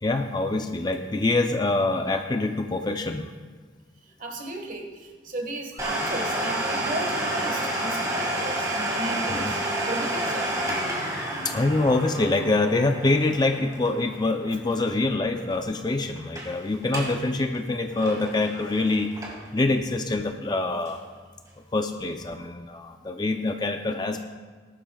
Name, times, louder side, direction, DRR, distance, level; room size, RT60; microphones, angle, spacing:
voice 1, 0.0-3.3 9.3-9.5 11.3-19.1 19.5-21.0 21.7-24.2, left 2 dB, 20° left, 6 dB, 0.5 m, -25 dB
voice 2, 4.2-9.6 9.9-10.5, right 1 dB, 45° right, 3 dB, 1.5 m, -35 dB
Domestic sounds home sounds, 5.8-15.2 15.5-15.6 16.2-16.5 16.8-17.2 17.5-19.6 20.1-20.2 20.9-21.0, right 1 dB, 20° right, 1.9 m, -30 dB
19.0 x 11.5 x 2.3 m, 1.5 s
head